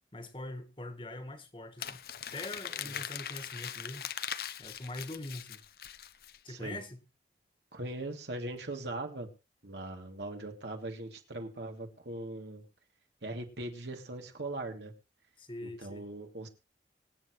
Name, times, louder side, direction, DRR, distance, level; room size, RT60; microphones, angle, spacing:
voice 1, 0.1-2.0 2.3-4.1 4.6-5.6 6.4-7.0 15.4-16.1, left 2 dB, 30° left, 1.7 m, -43 dB
Crumpling crinkling, 1.8-6.4, left 9 dB, 55° left, 0.7 m, -41 dB
voice 2, 6.5-6.8 7.7-9.3 9.6-12.7 13.2-14.9 15.6-16.5, right 2 dB, 75° right, 2.8 m, -40 dB
24.5 x 8.4 x 3.2 m
head